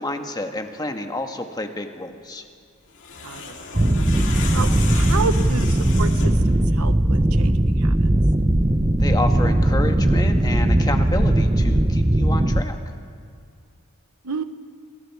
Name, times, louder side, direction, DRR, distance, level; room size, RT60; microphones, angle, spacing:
voice 1, 0.0-2.4 9.0-12.8, left 2 dB, 20° left, 5 dB, 1.4 m, -29 dB
sound 1, 2.9-6.5, left 5 dB, 55° left, 2.5 m, -34 dB
voice 2, 3.2-3.6 4.5-8.1 14.2-14.4, right 4 dB, 90° right, 10 dB, 1.0 m, -31 dB
sound 2, 3.7-12.6, right 1 dB, 20° right, 0.7 m, -19 dB
28.5 x 22.5 x 4.7 m, 2.3 s
head